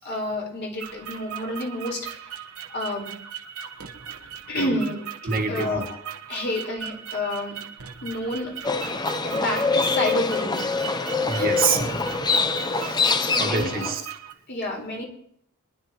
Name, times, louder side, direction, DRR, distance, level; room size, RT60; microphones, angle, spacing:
voice 1, 0.0-2.3 2.7-3.1 4.5-5.0 5.5-6.0 6.3-7.6 8.0-8.5 9.2-10.6 11.3-11.8 13.2-13.9 14.5-15.1, left 1 dB, 50° left, -1 dB, 4.0 m, -29 dB
sound 1, 0.8-14.3, right 8 dB, 90° right, 1.1 m, -39 dB
voice 2, 5.2-5.8 6.4-6.5 11.2-12.3 12.6-14.0, right 5 dB, 45° right, 2 dB, 1.5 m, -27 dB
Livestock farm animals working animals, 8.6-14.0, left 4 dB, 20° left, 0.5 m, -24 dB
22.5 x 11.0 x 2.9 m, 0.68 s
head